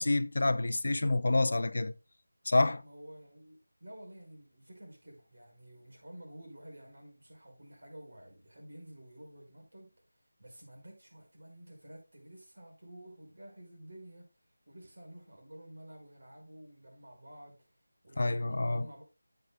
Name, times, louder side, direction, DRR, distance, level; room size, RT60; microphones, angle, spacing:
voice 1, 0.0-1.9 2.5-2.8 18.2-18.9, left 2 dB, 45° left, 0.5 m, -28 dB
voice 2, 2.8-17.7 18.0-19.0, right 1 dB, 55° right, 5.3 m, -51 dB
13.0 x 7.9 x 2.2 m
figure-of-eight pair, 180°, 0 cm